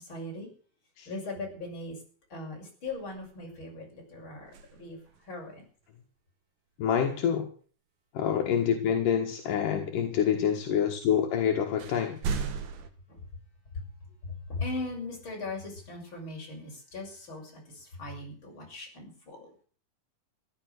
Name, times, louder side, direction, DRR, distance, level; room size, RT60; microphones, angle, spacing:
voice 1, 0.1-0.5 1.1-2.0 2.3-5.0 5.3-5.6 13.1-13.2 13.7-13.8 14.2-19.5, left 2 dB, 35° left, -1 dB, 7.1 m, -39 dB
sound 1, 2.9-3.6 4.4-5.4 8.9-9.0 11.0-11.1 11.8-12.9, right 5 dB, 85° right, 3.3 m, -36 dB
voice 2, 6.8-7.5 8.1-12.2, left 8 dB, 75° left, 2 dB, 3.1 m, -27 dB
15.5 x 12.0 x 6.6 m, 0.43 s
omnidirectional pair, 3.8 m